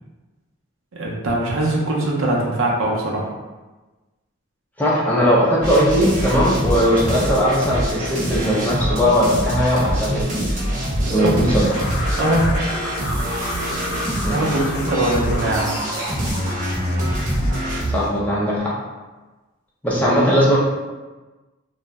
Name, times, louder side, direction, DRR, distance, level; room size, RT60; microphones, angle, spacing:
voice 1, 0.9-3.3 11.0-11.3 12.1-12.5 14.2-15.7, right 1 dB, 75° right, -2 dB, 0.6 m, -22 dB
voice 2, 4.8-10.6 11.1-11.7 14.2-14.4 17.9-18.7 19.8-20.6, equal, 5° left, -7 dB, 0.4 m, -19 dB
sound 1, 5.6-18.0, equal, 35° right, 0.7 m, -24 dB
sound 2, 11.5-18.2, left 2 dB, 80° left, 0.4 m, -32 dB
2.5 x 2.0 x 3.3 m, 1.2 s
head